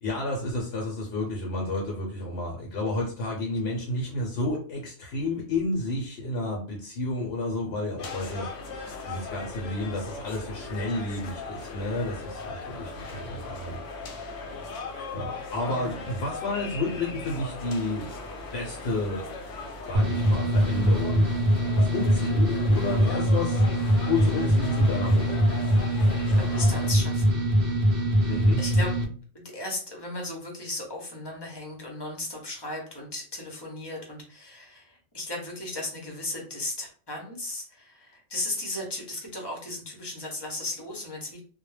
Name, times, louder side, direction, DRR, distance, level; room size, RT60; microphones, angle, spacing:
voice 1, 0.0-8.5 9.1-13.8 15.1-18.1 18.5-19.2 19.9-21.4 21.7-23.7 24.0-25.4 28.3-28.7, left 2 dB, 65° left, -1 dB, 0.8 m, -31 dB
sound 1, 8.0-26.9, left 3 dB, 90° left, 0.9 m, -38 dB
sound 2, 19.9-29.0, equal, 60° right, 0.7 m, -23 dB
voice 2, 26.3-27.4 28.1-28.9 29.3-41.4, left 1 dB, 25° left, -1 dB, 0.6 m, -36 dB
2.2 x 2.0 x 3.1 m, 0.43 s
omnidirectional pair, 1.2 m